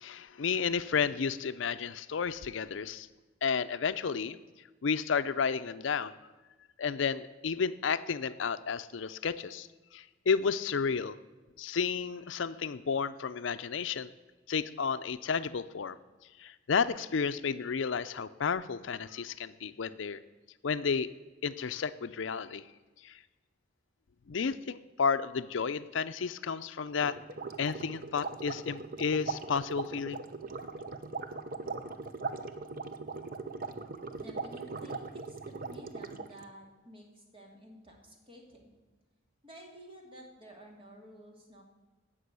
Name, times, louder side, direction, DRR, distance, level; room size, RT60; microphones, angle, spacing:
voice 1, 0.0-3.1 3.4-4.4 4.8-6.2 6.8-9.7 9.9-11.1 11.6-14.1 14.5-16.0 16.4-20.2 20.6-21.1 21.4-22.6 23.0-23.2 24.3-27.2 27.6-30.2, left 6 dB, 70° left, 12 dB, 0.5 m, -32 dB
sound 1, 27.0-36.4, right 4 dB, 45° right, 0.8 m, -40 dB
voice 2, 34.2-38.7 39.4-41.6, equal, 30° right, 1 dB, 2.6 m, -52 dB
16.0 x 6.2 x 8.2 m, 1.2 s
head